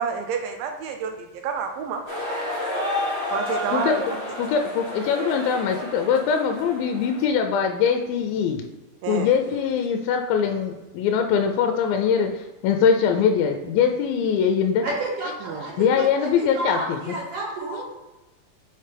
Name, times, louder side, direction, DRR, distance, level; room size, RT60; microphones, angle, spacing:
voice 1, 0.0-2.0 3.3-3.9 9.0-9.3 15.4-15.7, right 6 dB, 80° right, 5 dB, 2.2 m, -29 dB
sound 1, 2.1-7.3, left 1 dB, 40° left, 1.6 m, -30 dB
voice 2, 3.7-8.6 9.1-14.8 15.8-17.1, left 7 dB, 85° left, 5 dB, 2.3 m, -22 dB
voice 3, 14.8-17.9, right 2 dB, 50° right, -4 dB, 2.1 m, -31 dB
6.4 x 4.4 x 3.3 m, 1.0 s
omnidirectional pair, 4.2 m